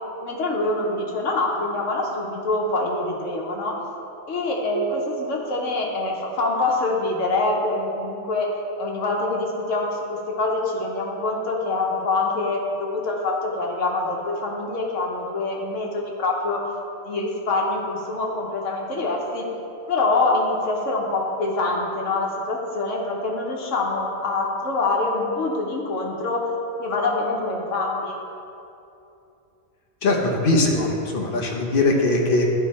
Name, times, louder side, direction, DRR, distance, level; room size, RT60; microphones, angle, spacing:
voice 1, 0.2-3.7 4.3-8.5 8.8-16.6 17.0-19.4 19.9-26.5 26.8-28.2, left 2 dB, 80° left, -2 dB, 1.4 m, -25 dB
voice 2, 30.0-32.4, left 2 dB, 50° left, 0 dB, 1.1 m, -21 dB
10.5 x 4.5 x 4.2 m, 2.7 s
omnidirectional pair, 1.3 m